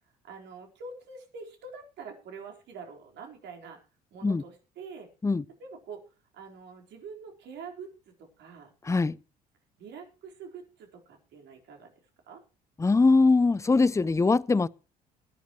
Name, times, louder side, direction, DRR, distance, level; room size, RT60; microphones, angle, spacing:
voice 1, 0.2-3.8 4.1-5.1 5.6-6.0 6.3-7.9 8.4-8.7 9.8-11.9 12.3-12.4, right 5 dB, 55° right, 4.3 m, -45 dB
voice 2, 8.8-9.2 12.8-14.7, left 3 dB, 15° left, 0.7 m, -22 dB
21.0 x 10.5 x 3.1 m
figure-of-eight pair, 55°, 21 cm